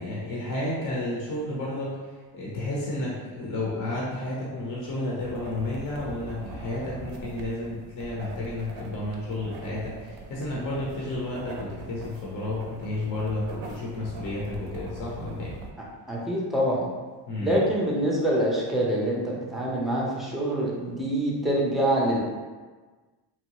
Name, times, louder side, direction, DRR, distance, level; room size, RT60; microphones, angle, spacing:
voice 1, 0.0-1.9 2.3-15.5 17.3-17.6, left 2 dB, 45° left, -5 dB, 0.7 m, -31 dB
sound 1, 5.2-15.7, right 3 dB, 55° right, 0.5 m, -41 dB
voice 2, 16.1-16.9 17.4-22.2, right 1 dB, ahead, -5 dB, 0.5 m, -25 dB
2.8 x 2.1 x 2.9 m, 1.4 s
cardioid pair, 100°, 44 cm